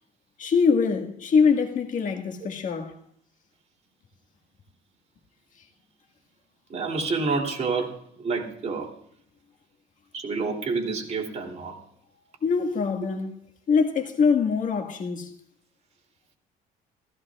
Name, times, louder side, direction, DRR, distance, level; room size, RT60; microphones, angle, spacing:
voice 1, 0.4-2.9 12.4-13.4 13.7-15.3, left 5 dB, 50° left, 1.8 m, -23 dB
voice 2, 6.7-8.9 10.1-11.7, right 4 dB, 40° right, 3.0 m, -28 dB
16.0 x 15.5 x 2.4 m
cardioid pair, 110°, 17 cm